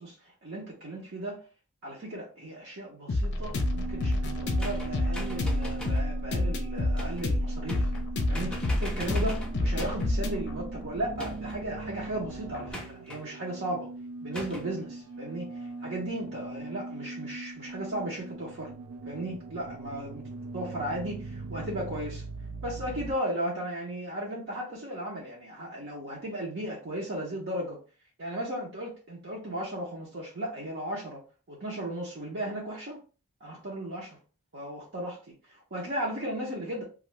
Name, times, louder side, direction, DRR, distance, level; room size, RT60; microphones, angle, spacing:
voice 1, 0.0-1.4 1.8-7.9 8.3-13.9 14.2-18.7 19.1-20.3 20.5-22.2 22.6-27.8 28.2-31.2 31.5-33.0 33.4-34.2 34.5-36.8, right 1 dB, 50° right, 0.8 m, -36 dB
sound 1, 3.1-12.7, left 1 dB, 50° left, 0.5 m, -29 dB
sound 2, 3.6-23.1, right 3 dB, 70° right, 0.4 m, -40 dB
sound 3, 4.6-6.1 7.0-7.3 7.7-8.1 8.3-10.1 11.2-11.7 12.7-13.2 14.3-14.7, left 1 dB, 5° left, 0.5 m, -41 dB
2.5 x 2.5 x 3.1 m
head